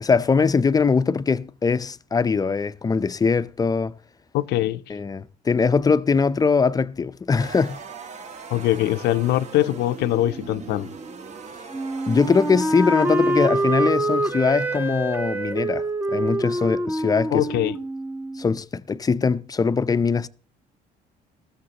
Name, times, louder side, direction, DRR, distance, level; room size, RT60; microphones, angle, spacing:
voice 1, 0.0-3.9 4.9-7.8 12.1-15.9 16.1-17.5 18.4-20.3, left 5 dB, 20° left, 0.5 m, -21 dB
voice 2, 4.3-4.8 8.5-10.9 17.3-17.8, left 14 dB, 80° left, 0.6 m, -22 dB
sound 1, 7.4-15.5, right 5 dB, 45° right, 1.2 m, -41 dB
Wind instrument woodwind instrument, 11.7-18.5, right 1 dB, 10° right, 0.8 m, -25 dB
19.5 x 14.5 x 2.9 m
cardioid pair, 110°, 17 cm